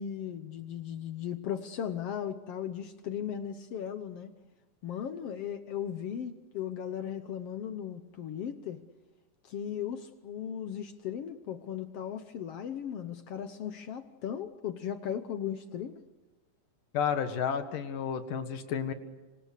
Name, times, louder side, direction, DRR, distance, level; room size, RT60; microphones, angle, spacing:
voice 1, 0.0-4.3 4.8-8.8 9.5-16.0, left 9 dB, 65° left, 10 dB, 1.6 m, -37 dB
voice 2, 16.9-18.9, left 7 dB, 80° left, 8 dB, 3.3 m, -31 dB
26.0 x 26.0 x 6.6 m, 1.2 s
omnidirectional pair, 3.7 m